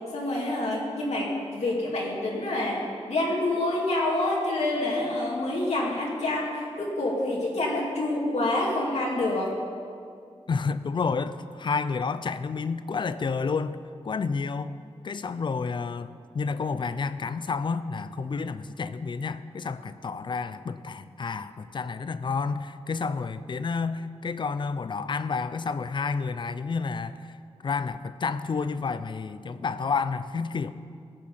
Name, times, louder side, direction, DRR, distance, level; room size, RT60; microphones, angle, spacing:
voice 1, 0.1-9.5, left 2 dB, 75° left, -4 dB, 2.4 m, -27 dB
voice 2, 10.5-13.8 14.0-14.8 15.0-27.3 27.6-30.7, left 5 dB, 45° left, 13 dB, 0.5 m, -30 dB
18.0 x 7.6 x 5.6 m, 2.3 s
wide cardioid pair, 165°, 11 cm